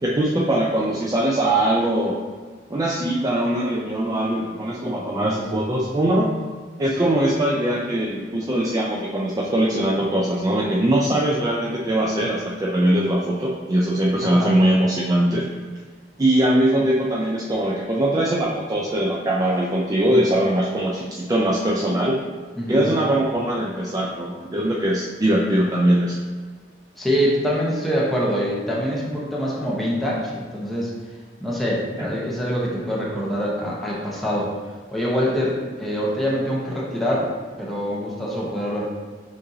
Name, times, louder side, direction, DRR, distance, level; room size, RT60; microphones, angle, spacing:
voice 1, 0.0-2.2 2.7-6.4 6.8-15.5 16.2-22.2 22.7-26.2 32.0-32.1, right 1 dB, 20° right, -4 dB, 0.4 m, -21 dB
voice 2, 14.2-14.5 22.6-22.9 27.0-30.9 31.4-34.5 34.9-37.3 37.6-38.9, equal, ahead, -6 dB, 0.9 m, -24 dB
6.6 x 2.6 x 2.7 m, 1.5 s
head